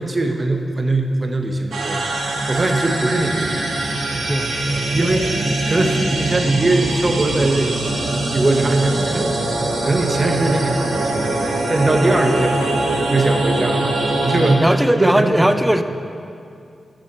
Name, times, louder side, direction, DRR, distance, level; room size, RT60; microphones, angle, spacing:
voice 1, 0.0-9.3 9.8-14.6 15.0-15.6, right 2 dB, 30° right, 4 dB, 1.3 m, -21 dB
sound 1, 1.7-14.5, right 2 dB, 85° right, 1.8 m, -22 dB
voice 2, 14.6-15.8, right 1 dB, 10° right, 9 dB, 0.7 m, -18 dB
11.5 x 7.8 x 7.6 m, 2.5 s
cardioid pair, 75°, 0 cm